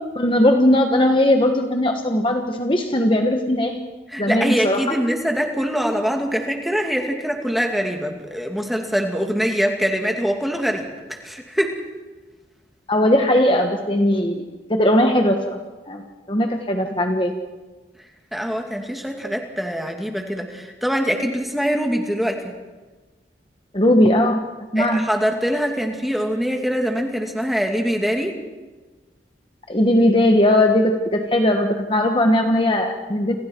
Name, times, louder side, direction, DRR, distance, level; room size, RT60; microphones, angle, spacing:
voice 1, 0.1-3.8 4.2-4.8 12.9-14.4 14.7-15.4 15.9-16.0 16.3-17.3 23.7-24.4 24.7-25.0 29.7-33.4, left 1 dB, 30° left, 4 dB, 1.5 m, -18 dB
voice 2, 4.1-11.8 18.3-22.5 24.8-28.3, equal, ahead, 2 dB, 2.5 m, -23 dB
29.5 x 27.0 x 4.7 m, 1.3 s
head